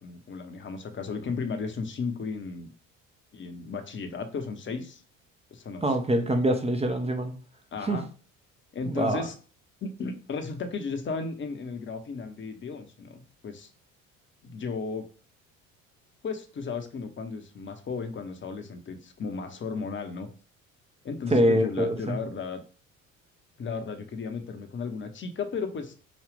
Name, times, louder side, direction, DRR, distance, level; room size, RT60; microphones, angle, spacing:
voice 1, 0.0-2.7 3.3-5.0 5.5-6.0 7.7-8.1 8.7-9.3 9.8-13.7 14.4-15.0 16.2-20.3 21.0-22.6 23.6-26.0, left 4 dB, 30° left, 0.8 m, -34 dB
voice 2, 5.8-7.4 7.8-8.0 8.9-9.2 21.3-22.2, right 1 dB, 15° right, 0.6 m, -24 dB
5.0 x 2.3 x 3.4 m
hypercardioid pair, 55°, 39 cm